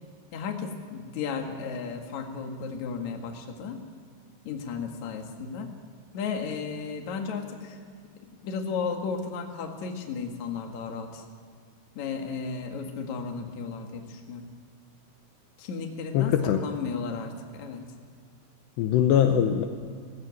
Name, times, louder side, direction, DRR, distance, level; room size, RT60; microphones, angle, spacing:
voice 1, 0.3-3.8 4.4-5.8 6.1-7.8 8.4-11.3 12.0-14.5 15.6-17.8, left 5 dB, 50° left, 3 dB, 2.6 m, -34 dB
voice 2, 16.1-16.6 18.8-19.6, left 9 dB, 75° left, 6 dB, 2.9 m, -22 dB
17.0 x 16.5 x 9.5 m, 2.1 s
omnidirectional pair, 5.2 m